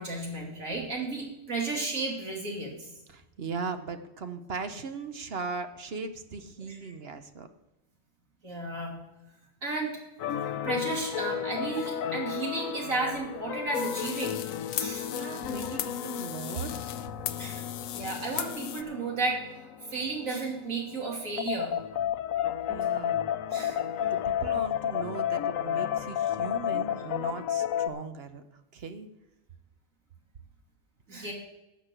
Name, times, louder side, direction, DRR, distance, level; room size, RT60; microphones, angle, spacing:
voice 1, 0.0-2.9 6.7-6.9 8.4-8.9 9.6-9.9 10.6-14.4 14.7-15.1 17.4-17.6 17.9-19.4 19.9-21.7 23.5-23.8 31.1-31.3, right 3 dB, 80° right, -1 dB, 3.2 m, -33 dB
voice 2, 3.1-7.5 15.1-16.8 22.7-23.3 23.7-23.8 24.1-28.4 28.7-29.1, right 4 dB, 55° right, 9 dB, 1.0 m, -38 dB
sound 1, 10.2-27.9, left 10 dB, 85° left, 1.1 m, -32 dB
sound 2, 13.7-18.8, left 11 dB, 70° left, 0.9 m, -37 dB
12.0 x 6.1 x 7.9 m, 1.0 s
omnidirectional pair, 1.4 m